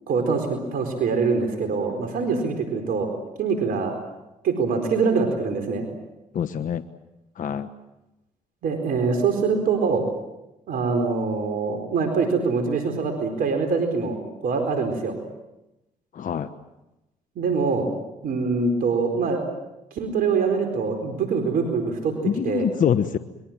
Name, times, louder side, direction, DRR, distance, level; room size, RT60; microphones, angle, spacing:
voice 1, 0.1-3.1 3.4-4.0 4.4-5.8 8.6-10.0 10.7-15.2 17.4-17.9 18.2-19.4 19.9-22.1 22.4-22.7, right 4 dB, 65° right, 5 dB, 4.4 m, -24 dB
voice 2, 6.3-6.8 7.4-7.7 16.1-16.5 22.2-23.2, left 8 dB, 55° left, 11 dB, 1.1 m, -24 dB
27.0 x 22.5 x 7.5 m, 0.94 s
supercardioid pair, 60°, 16 cm